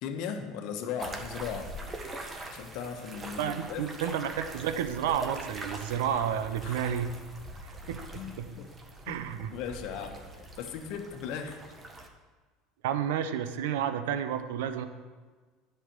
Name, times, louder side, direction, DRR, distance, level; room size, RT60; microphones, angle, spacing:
voice 1, 0.0-1.8 2.5-3.9 6.6-6.9 8.1-8.7 9.1-9.2 9.5-10.2 10.6-11.6, left 7 dB, 65° left, 5 dB, 1.2 m, -37 dB
sound 1, 1.0-12.1, right 1 dB, 25° right, 1.4 m, -43 dB
voice 2, 3.4-7.1 7.9-8.0 8.4-8.5 9.1-9.5 12.8-14.9, right 9 dB, 75° right, 9 dB, 0.7 m, -31 dB
10.0 x 5.8 x 7.4 m, 1.4 s
hypercardioid pair, 80°, 0 cm